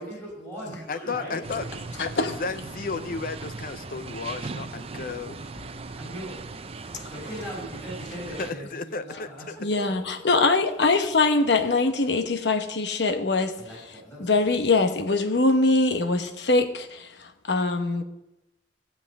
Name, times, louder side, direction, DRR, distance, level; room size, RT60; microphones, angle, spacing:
voice 1, 0.0-1.4 6.0-6.4 7.1-9.4 9.7-10.4 13.6-14.5, equal, 10° left, 5.8 m, -39 dB
voice 2, 0.9-1.6 2.0-5.4 8.4-9.6, left 4 dB, 55° left, 0.6 m, -33 dB
sound 1, 1.4-8.5, right 3 dB, 35° right, 0.6 m, -38 dB
voice 3, 2.0-2.3 9.6-13.6 14.2-18.0, left 3 dB, 75° left, 1.0 m, -23 dB
15.5 x 5.9 x 8.6 m
head